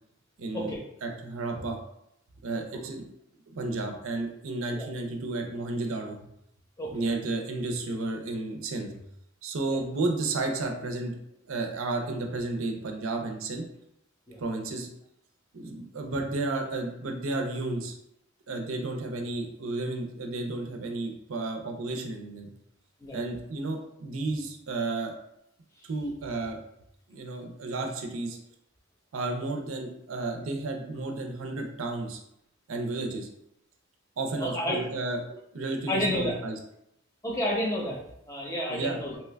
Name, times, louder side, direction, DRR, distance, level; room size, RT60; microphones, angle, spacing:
voice 1, 0.4-0.7 1.0-1.8 2.4-3.0 3.5-6.2 6.9-8.9 9.4-11.1 11.4-13.7 14.4-14.9 15.5-17.9 18.5-22.5 23.1-25.2 25.8-26.6 27.1-28.4 29.1-32.2 32.7-33.3 34.2-36.6 38.7-39.0, right 2 dB, 85° right, 3 dB, 0.5 m, -32 dB
voice 2, 34.4-34.8 35.9-36.4 37.2-38.0 38.3-39.2, left 1 dB, 15° left, -3 dB, 0.6 m, -30 dB
2.9 x 2.2 x 3.3 m, 0.78 s
head